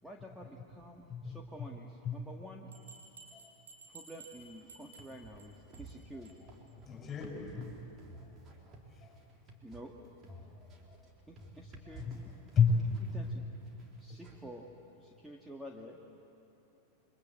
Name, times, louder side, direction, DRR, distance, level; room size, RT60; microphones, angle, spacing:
voice 1, 0.0-2.7 3.9-6.4 9.6-9.9 11.3-12.3 13.0-13.4 14.0-14.7 15.0-16.0, equal, 5° right, 0 dB, 1.9 m, -50 dB
voice 2, 1.1-1.4 2.0-2.2 6.9-7.8 11.9-12.2 12.5-13.3, left 5 dB, 20° left, 0 dB, 7.2 m, -31 dB
Bell, 2.7-5.4 5.7-5.9 6.2-6.3 6.7-6.8 7.1-7.2, right 3 dB, 65° right, 5.7 m, -54 dB
sound 1, 4.4-14.3, right 2 dB, 30° right, 3.8 m, -53 dB
30.0 x 24.0 x 8.3 m, 3.0 s
figure-of-eight pair, 90°, 0 cm